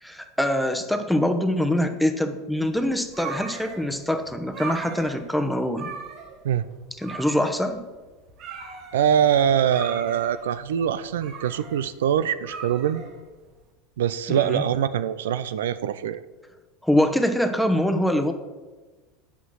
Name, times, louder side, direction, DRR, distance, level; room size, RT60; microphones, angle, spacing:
voice 1, 0.0-5.9 7.0-7.8 14.3-14.6 16.8-18.3, left 1 dB, ahead, 7 dB, 1.0 m, -24 dB
sound 1, 2.6-13.6, right 5 dB, 55° right, 1.4 m, -39 dB
voice 2, 8.9-13.0 14.0-16.2, right 9 dB, 80° right, 14 dB, 0.4 m, -23 dB
8.1 x 5.9 x 6.3 m, 1.3 s
hypercardioid pair, 90°, 0 cm